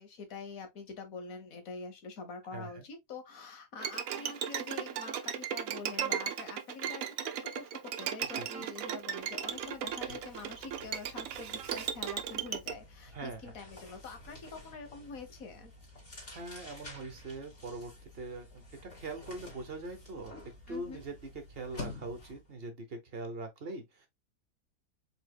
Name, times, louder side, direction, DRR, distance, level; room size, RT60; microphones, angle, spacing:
voice 1, 0.0-15.7 20.7-21.0, left 4 dB, 75° left, 1.5 m, -46 dB
voice 2, 2.5-2.8 8.3-8.7 13.1-13.4 16.3-20.4 20.7-21.1 21.5-24.1, right 2 dB, 50° right, 1.0 m, -42 dB
Bowed string instrument, 3.8-12.7, right 9 dB, 80° right, 1.1 m, -36 dB
sound 1, 8.6-8.8 9.1-22.5, left 2 dB, 40° left, 2.5 m, -51 dB
5.0 x 3.5 x 2.3 m
omnidirectional pair, 1.5 m